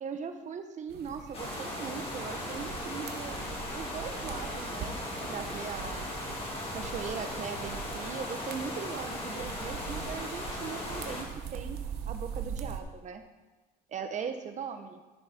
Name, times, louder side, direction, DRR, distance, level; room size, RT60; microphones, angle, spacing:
voice 1, 0.0-3.4 3.7-6.0 6.7-11.8 12.1-13.2 13.9-15.0, right 6 dB, 45° right, 7 dB, 1.1 m, -39 dB
sound 1, 0.9-12.8, right 7 dB, 75° right, 1.0 m, -42 dB
sound 2, 1.3-11.2, left 1 dB, 35° left, 2.7 m, -38 dB
14.0 x 6.7 x 4.4 m, 1.2 s
cardioid pair, 110°, 17 cm